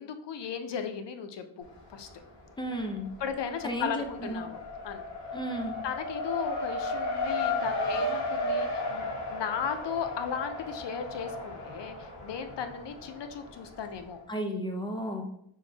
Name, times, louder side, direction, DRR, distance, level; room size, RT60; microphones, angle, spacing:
voice 1, 0.0-2.1 3.2-5.0 5.8-14.2, left 7 dB, 60° left, 7 dB, 0.5 m, -36 dB
Race car auto racing, 1.6-2.4 2.7-14.0, left 2 dB, 35° left, 1.1 m, -35 dB
voice 2, 2.6-3.1 3.6-4.5 5.3-5.8 14.3-15.3, equal, 10° left, 2 dB, 0.5 m, -33 dB
6.3 x 2.1 x 2.7 m, 0.73 s
wide cardioid pair, 105°, 48 cm